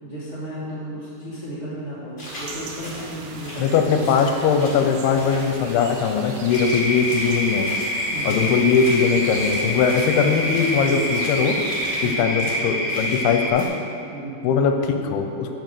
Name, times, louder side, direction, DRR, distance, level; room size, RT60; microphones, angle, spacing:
voice 1, 0.0-4.1 8.1-8.8 12.0-12.4 14.1-14.4, right 1 dB, 30° right, -10 dB, 1.2 m, -34 dB
sound 1, 2.2-2.5 2.8-4.9 5.2-6.1 6.4-10.8 11.1-11.4 11.7-12.0 12.4-12.6 12.9-13.3 13.5-13.6, left 1 dB, 25° left, 1.7 m, -39 dB
sound 2, 2.3-12.2, right 4 dB, 75° right, 2.2 m, -38 dB
voice 2, 3.6-7.7 8.3-11.6 12.0-13.6 14.4-15.5, left 6 dB, 80° left, 5 dB, 2.6 m, -20 dB
sound 3, 6.5-13.5, left 1 dB, 50° left, 2.1 m, -26 dB
8.6 x 6.4 x 6.7 m, 2.7 s
omnidirectional pair, 4.6 m